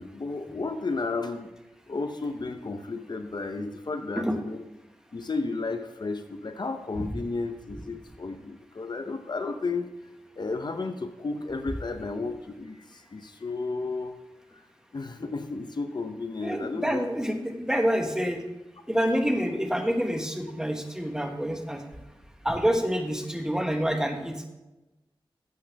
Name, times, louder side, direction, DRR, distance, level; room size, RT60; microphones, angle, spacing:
voice 1, 0.0-1.5 1.9-4.6 5.1-9.9 10.4-14.1 14.9-17.0, left 3 dB, 50° left, 7 dB, 0.7 m, -33 dB
voice 2, 16.4-18.4 18.9-21.8 22.4-24.5, equal, 5° right, 4 dB, 1.3 m, -27 dB
12.0 x 7.8 x 3.4 m, 1.0 s
wide cardioid pair, 65°, 9 cm